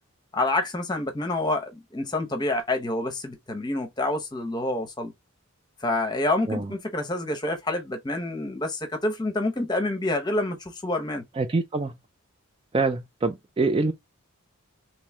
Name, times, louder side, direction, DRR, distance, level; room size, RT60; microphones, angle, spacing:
voice 1, 0.3-5.1 5.8-11.2, left 2 dB, 20° left, 0.8 m, -27 dB
voice 2, 11.4-11.9 12.7-13.9, right 3 dB, 25° right, 0.3 m, -25 dB
3.1 x 3.1 x 3.4 m
head